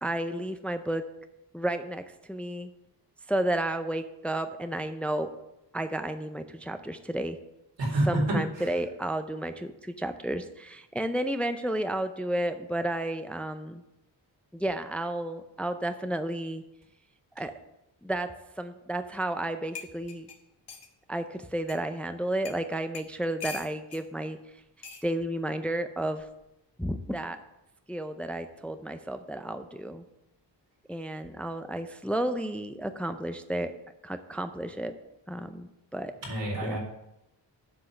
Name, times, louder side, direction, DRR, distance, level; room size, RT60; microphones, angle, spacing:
voice 1, 0.0-1.1 1.5-2.0 2.3-2.7 3.3-5.3 5.7-7.4 8.1-13.8 14.5-16.6 17.4-17.5 18.0-18.3 18.6-20.3 21.1-24.4 25.0-26.3 26.8-27.4 27.9-30.0 30.9-33.7 34.0-34.9 35.3-36.1 36.6-36.8, right 1 dB, 5° left, 8 dB, 0.5 m, -32 dB
voice 2, 7.8-8.7 36.2-36.8, right 1 dB, 85° right, -3 dB, 4.0 m, -28 dB
sound 1, 19.4-19.5 19.7-20.9 21.7-21.8 22.4-22.6 22.9-24.0 24.8-25.1 26.2-26.4, left 5 dB, 70° left, 1.5 m, -42 dB
7.7 x 6.0 x 6.4 m, 0.87 s
wide cardioid pair, 105°, 43 cm